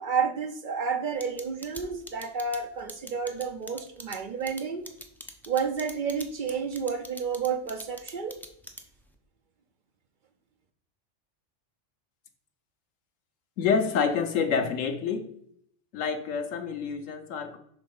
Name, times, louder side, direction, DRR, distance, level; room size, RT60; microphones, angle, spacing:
voice 1, 0.0-4.8 5.5-8.4, right 6 dB, 50° right, 7 dB, 0.6 m, -30 dB
sound 1, 1.2-9.1, equal, 5° left, 0.4 m, -43 dB
voice 2, 13.6-15.3 15.9-17.6, left 6 dB, 90° left, 7 dB, 1.2 m, -27 dB
6.2 x 3.6 x 5.3 m, 0.70 s
omnidirectional pair, 1.3 m